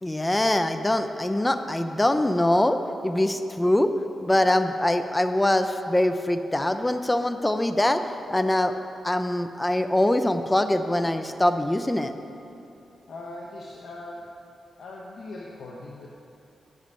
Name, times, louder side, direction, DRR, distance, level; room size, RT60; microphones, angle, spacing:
voice 1, 0.0-3.9 4.2-8.0 8.3-8.7 9.0-12.1, left 1 dB, 15° left, 8 dB, 0.6 m, -23 dB
voice 2, 13.1-14.3 14.8-16.1, left 2 dB, 70° left, -2 dB, 1.1 m, -40 dB
10.5 x 6.6 x 8.5 m, 2.8 s
cardioid pair, 85°, 0 cm